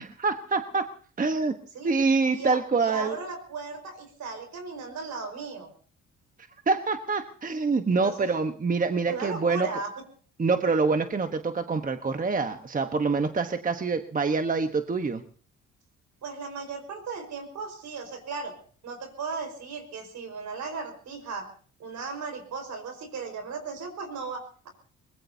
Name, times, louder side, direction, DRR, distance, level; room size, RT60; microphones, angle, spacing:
voice 1, 0.2-0.8 1.2-1.5 1.8-3.2 6.7-9.7 10.4-15.2, right 4 dB, 25° right, 7 dB, 1.2 m, -26 dB
voice 2, 2.3-5.7 8.0-8.3 9.1-10.0 16.2-18.5 18.8-21.5 21.8-24.7, right 4 dB, 65° right, 6 dB, 5.1 m, -36 dB
23.0 x 20.5 x 2.8 m, 0.43 s
cardioid pair, 90°, 30 cm